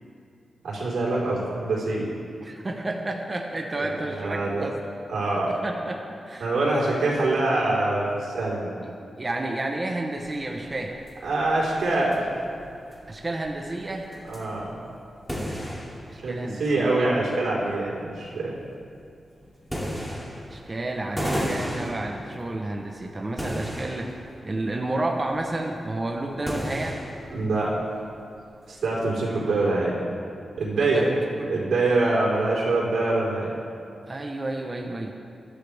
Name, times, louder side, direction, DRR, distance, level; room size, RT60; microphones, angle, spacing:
voice 1, 0.6-2.1 3.8-4.7 5.1-5.5 6.4-8.7 11.2-12.2 14.3-14.8 16.2-18.5 27.3-27.7 28.7-29.9 30.6-31.1 31.5-33.5, right 2 dB, 90° right, -5 dB, 4.4 m, -24 dB
voice 2, 2.4-4.8 5.5-6.5 8.8-11.0 13.1-14.1 16.1-17.1 20.5-24.1 24.4-27.0 30.8-31.5 34.1-35.1, right 2 dB, 25° right, 1 dB, 1.0 m, -31 dB
sound 1, 10.2-29.1, equal, ahead, 3.0 m, -36 dB
22.0 x 13.5 x 3.5 m, 2.5 s
wide cardioid pair, 145°, 0 cm